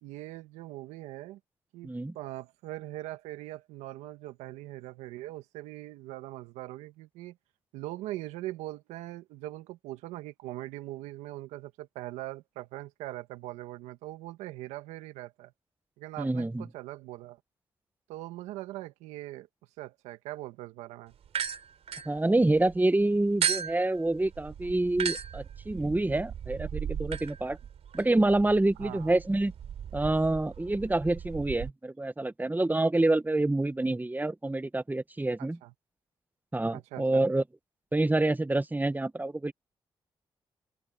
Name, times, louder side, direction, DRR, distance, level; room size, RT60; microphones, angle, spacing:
voice 1, 0.0-1.4 1.7-7.4 7.7-15.5 16.0-17.4 18.1-19.5 19.8-21.1 28.8-29.1 35.4-35.7 36.7-37.3, right 16 dB, 90° right, 1.7 m, -41 dB
voice 2, 1.8-2.1 16.2-16.6 22.0-27.6 27.9-29.5 29.9-35.6 36.5-37.4 37.9-39.5, right 2 dB, 15° right, 1.3 m, -27 dB
sound 1, 21.3-22.7 23.4-31.7, right 8 dB, 70° right, 3.7 m, -36 dB
hypercardioid pair, 45°, 11 cm